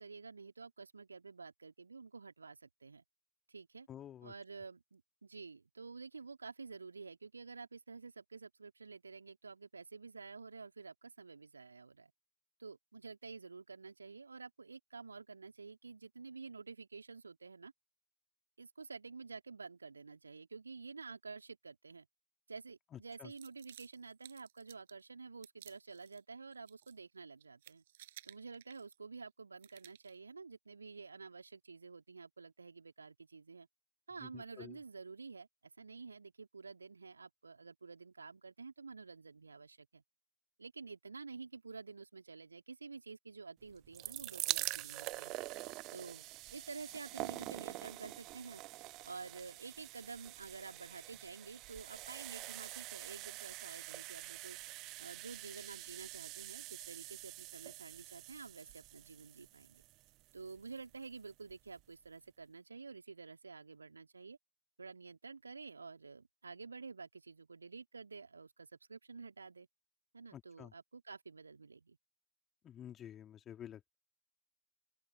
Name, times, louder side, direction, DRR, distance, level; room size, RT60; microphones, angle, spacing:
voice 1, 0.0-3.0 3.5-3.9 4.2-12.1 12.6-17.7 18.6-22.1 22.5-27.8 28.2-33.7 34.1-35.5 35.8-40.0 40.6-45.3 45.9-46.2 46.5-48.6 49.0-54.6 55.0-59.8 60.3-64.4 64.8-69.7 70.1-72.0, right 4 dB, 75° right, 3.0 m, -50 dB
voice 2, 3.9-4.3 23.2-23.3 34.2-34.7 70.3-70.7 72.6-74.0, left 10 dB, 25° left, 3.1 m, -50 dB
sound 1, 23.3-25.0 25.4-26.2 26.5-27.2 27.4-29.2 29.6-30.2, right 13 dB, 55° right, 5.0 m, -58 dB
sound 2, 43.7-60.7 61.5-61.6 61.8-61.9, right 20 dB, 40° right, 1.1 m, -45 dB
open air
figure-of-eight pair, 90°, 0 cm